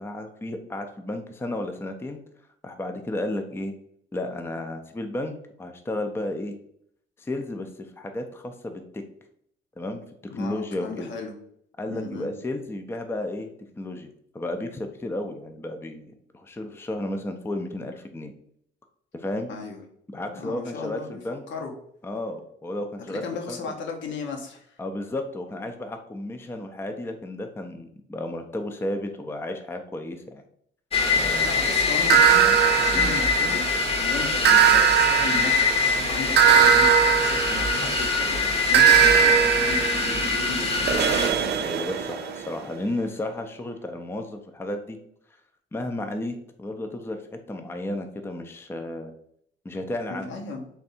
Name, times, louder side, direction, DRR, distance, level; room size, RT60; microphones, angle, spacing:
voice 1, 0.0-2.2 2.6-3.7 4.1-6.6 7.2-9.0 9.8-10.0 10.3-11.1 11.8-18.3 19.1-19.5 20.1-21.4 22.0-23.2 23.5-23.8 24.8-30.4 31.2-31.6 32.9-33.2 41.6-45.0 45.7-47.2 47.5-49.1 49.6-50.3, left 1 dB, 10° left, 6 dB, 0.4 m, -33 dB
voice 2, 10.3-11.3 11.9-12.3 19.5-19.8 20.4-21.2 21.5-21.7 23.1-24.8 31.4-33.6 34.0-38.4 38.6-40.9 50.1-50.7, left 4 dB, 70° left, 2 dB, 0.9 m, -35 dB
sound 1, 30.9-41.3, left 4 dB, 30° left, 0.8 m, -24 dB
sound 2, 32.1-33.8 34.4-38.1 38.7-42.5, right 10 dB, 55° right, 0.5 m, -20 dB
3.4 x 2.6 x 4.1 m, 0.69 s
cardioid pair, 90°, 20 cm